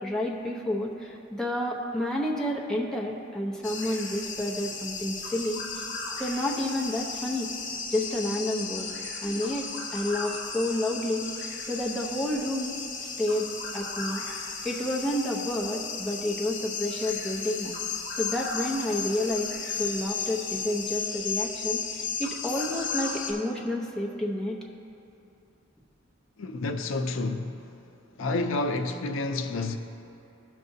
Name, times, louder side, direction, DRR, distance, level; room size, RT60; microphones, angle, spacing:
voice 1, 0.0-5.8 6.2-7.5 7.9-8.9 9.2-11.3 11.7-12.8 13.2-13.5 13.7-14.2 14.6-17.7 18.2-19.5 19.8-24.6, left 1 dB, 5° left, 0.8 m, -30 dB
sound 1, 3.6-23.3, left 5 dB, 45° left, 1.3 m, -35 dB
voice 2, 26.4-27.5 28.2-29.8, left 2 dB, 80° left, 0.5 m, -29 dB
16.0 x 5.8 x 2.7 m
head